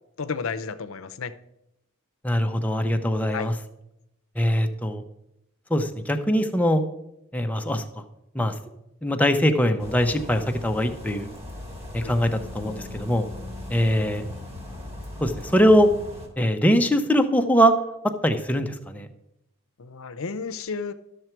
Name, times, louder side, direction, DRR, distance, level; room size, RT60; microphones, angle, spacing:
voice 1, 0.2-1.3 3.3-3.5 12.0-12.2 19.8-20.9, left 5 dB, 70° left, 11 dB, 0.6 m, -32 dB
voice 2, 2.2-3.5 4.4-5.0 5.7-6.8 7.3-7.8 8.3-8.5 9.0-11.3 11.9-13.2 13.7-14.2 15.2-15.9 16.4-17.7 18.2-19.1, equal, 5° left, 5 dB, 0.6 m, -22 dB
sound 1, 9.8-16.3, left 2 dB, 30° right, 1.8 m, -39 dB
12.0 x 6.7 x 4.5 m, 0.86 s
head